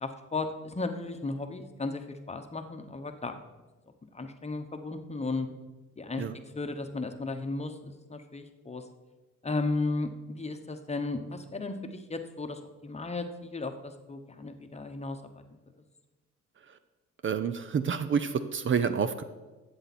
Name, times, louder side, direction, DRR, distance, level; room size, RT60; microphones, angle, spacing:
voice 1, 0.0-3.4 4.1-5.5 6.0-6.2 6.5-8.9 9.4-15.4, left 3 dB, 20° left, 7 dB, 1.0 m, -35 dB
voice 2, 17.2-19.2, right 6 dB, 40° right, 11 dB, 0.6 m, -28 dB
12.5 x 7.9 x 4.2 m, 1.2 s
cardioid pair, 90°, 30 cm